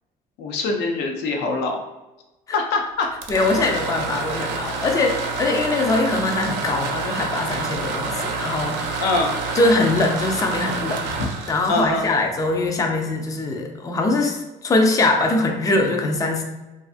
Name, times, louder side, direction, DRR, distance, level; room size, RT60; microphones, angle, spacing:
voice 1, 0.4-1.8 2.5-3.1 9.0-9.4 11.7-12.1, left 3 dB, 85° left, 2 dB, 0.5 m, -23 dB
sound 1, 3.0-12.8, right 4 dB, 90° right, 0.4 m, -28 dB
voice 2, 3.3-8.9 9.6-11.0 11.5-16.4, left 2 dB, 20° left, 2 dB, 0.4 m, -22 dB
2.4 x 2.4 x 2.4 m, 1.1 s
cardioid pair, 110°, 17 cm